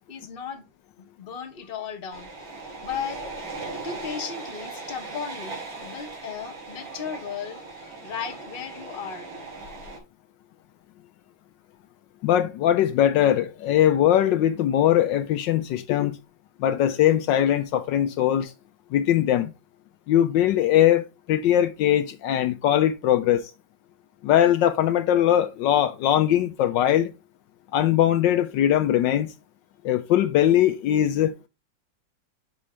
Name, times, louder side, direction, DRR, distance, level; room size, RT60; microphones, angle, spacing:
voice 1, 0.1-0.7 1.0-2.3 2.8-3.2 3.8-9.3, left 7 dB, 35° left, 1.1 m, -35 dB
sound 1, 2.1-10.0, right 3 dB, 85° right, 3.0 m, -38 dB
voice 2, 12.2-16.2 16.6-18.5 18.9-19.5 20.1-23.4 24.2-27.1 27.7-29.3 29.8-31.3, left 11 dB, 75° left, 1.3 m, -21 dB
6.1 x 4.9 x 4.3 m
omnidirectional pair, 2.0 m